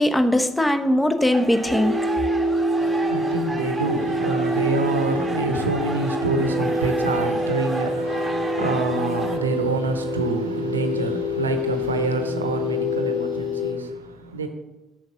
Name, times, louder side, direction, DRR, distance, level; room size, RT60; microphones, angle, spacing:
voice 1, 0.0-2.0 8.6-8.8, left 1 dB, 10° left, 1.0 m, -20 dB
sound 1, 1.3-9.4, right 2 dB, 10° right, 1.4 m, -33 dB
sound 2, 1.7-13.7, left 1 dB, 65° left, 1.7 m, -26 dB
voice 2, 2.8-14.5, right 3 dB, 80° right, 0.8 m, -27 dB
7.8 x 6.4 x 5.7 m
figure-of-eight pair, 45°, 0 cm